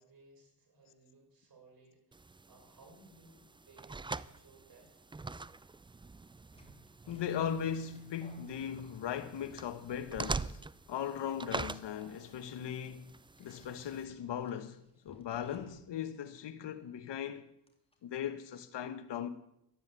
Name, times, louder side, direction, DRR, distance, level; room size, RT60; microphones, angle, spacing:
voice 1, 0.0-5.0, right 3 dB, 55° right, 6.9 m, -61 dB
sound 1, 2.1-14.0, right 3 dB, 10° right, 0.4 m, -44 dB
sound 2, 6.5-9.5 9.8-10.3 10.9-11.2 11.9-12.6 13.4-16.1 16.4-16.5 17.7-18.0, left 1 dB, 15° left, 3.0 m, -61 dB
voice 2, 7.1-10.6 10.9-13.1 13.4-17.5 18.0-19.3, left 8 dB, 80° left, 1.3 m, -38 dB
13.0 x 10.0 x 8.3 m
cardioid pair, 65°, 42 cm